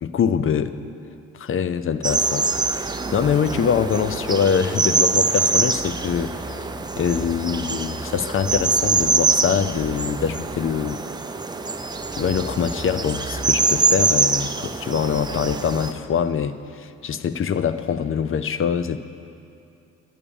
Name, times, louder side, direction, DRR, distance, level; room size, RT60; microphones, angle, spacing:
voice 1, 0.0-0.7 1.3-2.5 3.1-6.7 7.0-11.0 12.1-19.0, left 7 dB, 45° left, 13 dB, 0.6 m, -24 dB
sound 1, 2.0-15.9, right 3 dB, 15° right, 0.6 m, -24 dB
12.0 x 8.6 x 7.1 m, 2.6 s
cardioid pair, 90°, 30 cm